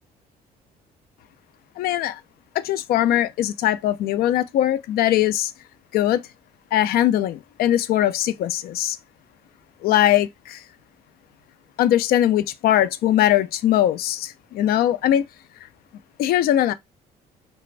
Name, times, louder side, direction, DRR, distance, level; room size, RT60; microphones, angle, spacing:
voice 1, 1.8-2.2 2.6-5.5 5.9-6.2 6.7-9.0 9.8-10.6 11.8-15.2 16.2-16.7, left 12 dB, 65° left, 0.4 m, -20 dB
3.2 x 2.0 x 2.4 m
cardioid pair, 110°, 17 cm